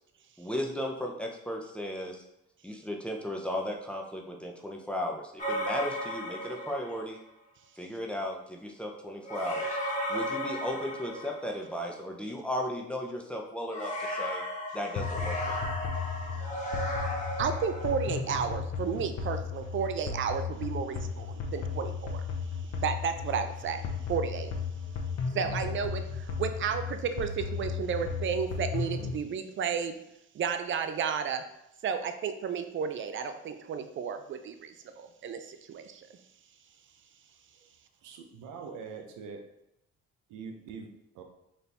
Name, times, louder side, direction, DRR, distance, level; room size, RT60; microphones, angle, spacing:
voice 1, 0.4-2.2 2.6-7.2 7.8-9.7 10.1-14.4 14.7-15.7, left 1 dB, 5° left, 0 dB, 0.6 m, -35 dB
sound 1, 5.4-7.1 9.2-11.8 13.7-18.1, equal, 25° left, 1.3 m, -35 dB
sound 2, 15.0-29.2, left 5 dB, 60° left, 0.7 m, -35 dB
voice 2, 17.4-22.2 22.8-23.8 24.1-24.5 25.3-29.9 30.3-31.4 31.8-36.1, right 7 dB, 40° right, 8 dB, 0.5 m, -32 dB
voice 3, 38.0-39.4 40.3-40.9 41.2-41.3, right 5 dB, 90° right, 4 dB, 0.7 m, -43 dB
4.2 x 2.7 x 3.4 m, 0.83 s
cardioid pair, 90°, 30 cm